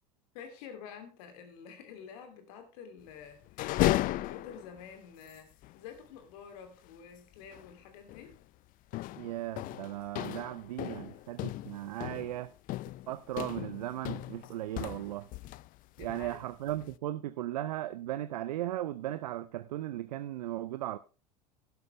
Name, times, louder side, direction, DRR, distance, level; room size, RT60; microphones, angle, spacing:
voice 1, 0.3-8.4 16.0-16.4, left 7 dB, 60° left, 2.9 m, -49 dB
sound 1, 3.4-4.9 5.3-5.4 5.6-5.8 7.5-7.7 8.1-8.4 8.9-15.7 16.0-16.9, left 17 dB, 40° left, 0.5 m, -35 dB
voice 2, 9.2-12.5 13.1-15.3 16.0-21.0, right 14 dB, 70° right, 0.6 m, -37 dB
12.0 x 11.5 x 3.3 m
hypercardioid pair, 80°, 21 cm